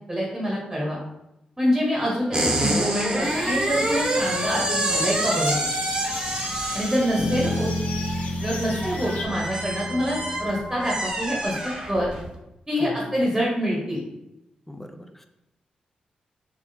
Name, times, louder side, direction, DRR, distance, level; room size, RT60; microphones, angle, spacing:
voice 1, 0.1-1.0 1.6-5.6 6.7-7.7 8.4-12.1 12.7-14.0, equal, 10° right, -4 dB, 1.1 m, -26 dB
sound 1, 2.3-12.3, right 1 dB, 35° right, 0.8 m, -27 dB
voice 2, 2.4-2.7 7.4-7.7 8.7-8.8 12.8-13.2 14.7-15.3, equal, 10° left, 6 dB, 0.4 m, -39 dB
sound 2, 3.2-9.3, left 4 dB, 80° left, 0.5 m, -38 dB
sound 3, 7.2-11.1, left 1 dB, 25° left, 0.9 m, -30 dB
3.5 x 3.1 x 2.7 m, 0.90 s
cardioid pair, 70°, 3 cm